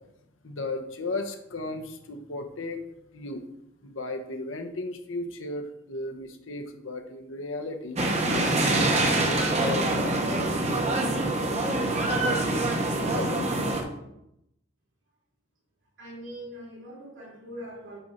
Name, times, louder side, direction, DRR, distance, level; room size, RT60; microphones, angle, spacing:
voice 1, 0.4-2.8 3.1-3.4 3.8-8.0 8.3-10.9 12.1-13.9, left 2 dB, 80° left, 4 dB, 1.0 m, -36 dB
sound 1, 8.0-13.8, right 2 dB, 35° right, 0.9 m, -25 dB
voice 2, 16.0-18.0, equal, 75° right, -4 dB, 3.0 m, -42 dB
6.9 x 5.1 x 4.3 m, 0.82 s
head